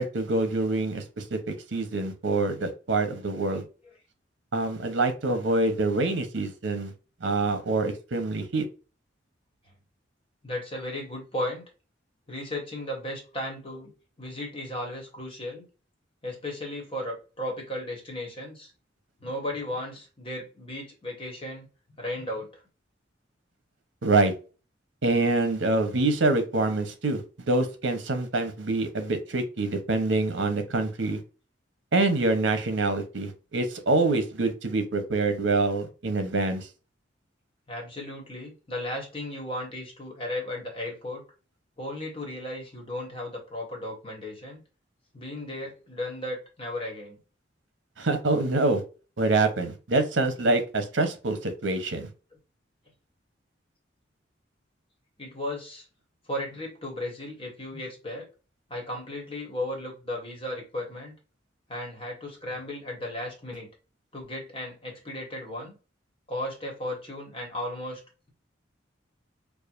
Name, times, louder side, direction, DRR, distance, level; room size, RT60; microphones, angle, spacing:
voice 1, 0.0-1.4 1.7-3.6 4.5-6.9 7.2-8.6 24.0-24.3 25.0-27.2 27.5-31.2 31.9-36.7 48.0-48.8 49.2-52.1, right 2 dB, 80° right, 0.8 m, -25 dB
voice 2, 10.4-11.6 12.3-13.9 14.2-15.7 16.2-18.7 19.2-21.7 22.0-22.6 37.7-41.2 41.8-44.6 45.1-47.2 55.2-55.8 56.3-58.2 58.7-61.1 61.7-63.7 64.1-65.8 66.3-68.0, left 1 dB, 30° left, 1.4 m, -35 dB
4.7 x 2.4 x 2.5 m
head